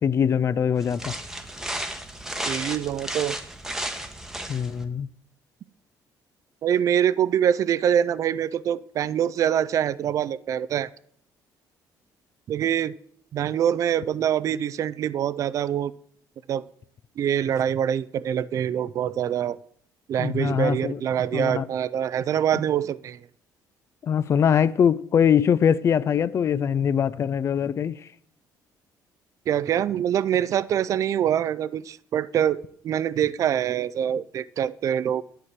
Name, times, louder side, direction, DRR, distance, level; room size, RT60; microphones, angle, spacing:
voice 1, 0.0-1.1 4.5-5.1 20.2-21.0 21.3-21.7 24.0-28.1, left 8 dB, 40° left, 0.4 m, -22 dB
sound 1, 0.8-4.8, right 1 dB, 5° right, 1.0 m, -33 dB
voice 2, 2.5-3.4 6.6-10.9 12.5-12.9 13.3-15.9 16.5-16.6 17.2-19.6 20.1-23.2 29.5-32.6 32.8-35.2, right 9 dB, 45° right, 0.4 m, -24 dB
11.5 x 4.6 x 7.4 m
cardioid pair, 135°, 7 cm